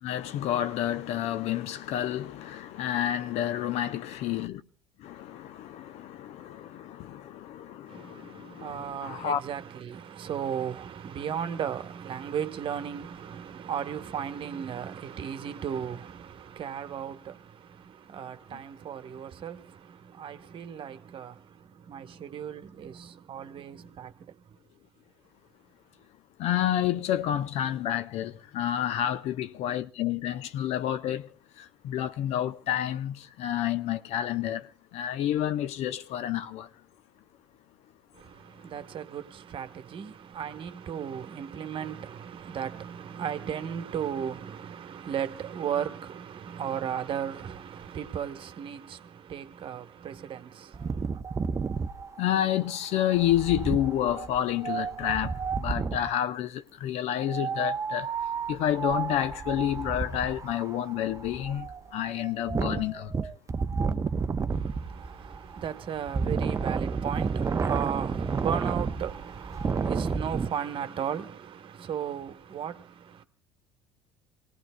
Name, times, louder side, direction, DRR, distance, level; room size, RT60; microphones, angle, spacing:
voice 1, 0.0-4.6 5.0-9.4 26.4-36.7 52.2-58.1 58.5-63.1, left 11 dB, 55° left, 0.7 m, -29 dB
voice 2, 7.9-24.6 38.1-51.2 64.5-73.2, right 8 dB, 40° right, 1.2 m, -36 dB
Wind, 50.7-56.2 57.2-70.5, right 5 dB, 25° right, 0.6 m, -31 dB
28.0 x 18.5 x 2.2 m
hypercardioid pair, 65°, 13 cm